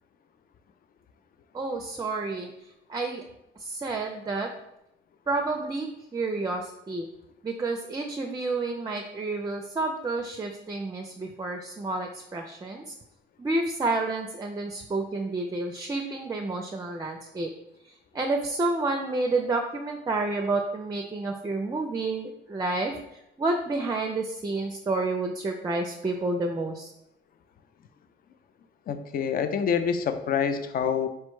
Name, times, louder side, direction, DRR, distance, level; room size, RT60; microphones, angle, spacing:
voice 1, 1.5-3.2 3.6-4.5 5.3-7.1 7.4-12.9 13.4-17.5 17.8-26.9, right 2 dB, 20° right, 4 dB, 0.4 m, -30 dB
voice 2, 28.9-31.1, left 7 dB, 50° left, 10 dB, 0.4 m, -26 dB
4.4 x 2.1 x 4.6 m, 0.83 s
cardioid pair, 90°, 20 cm